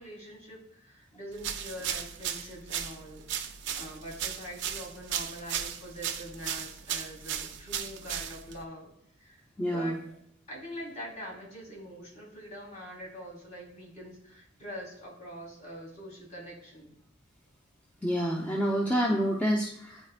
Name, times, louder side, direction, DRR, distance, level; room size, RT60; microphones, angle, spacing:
voice 1, 0.0-8.9 9.2-9.4 9.7-10.1 10.5-16.9, equal, 40° left, -4 dB, 2.4 m, -44 dB
sound 1, 1.4-8.6, right 9 dB, 60° right, 0.5 m, -36 dB
voice 2, 9.6-10.0 18.0-20.1, equal, 10° left, -2 dB, 0.5 m, -28 dB
9.7 x 4.2 x 2.4 m, 0.71 s
head